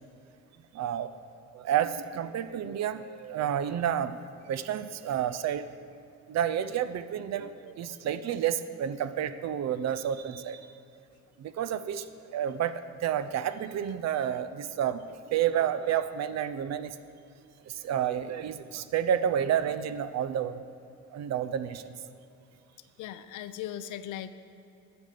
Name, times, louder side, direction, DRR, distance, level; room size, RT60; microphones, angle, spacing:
voice 1, 0.7-1.1 1.5-4.2 4.5-5.7 6.3-10.6 11.4-12.0 12.3-15.0 15.3-16.9 17.7-20.6 21.1-22.0, right 9 dB, 60° right, 12 dB, 0.5 m, -30 dB
voice 2, 23.0-24.3, left 11 dB, 80° left, 12 dB, 0.5 m, -38 dB
9.2 x 5.1 x 6.6 m, 2.6 s
cardioid pair, 90°, 30 cm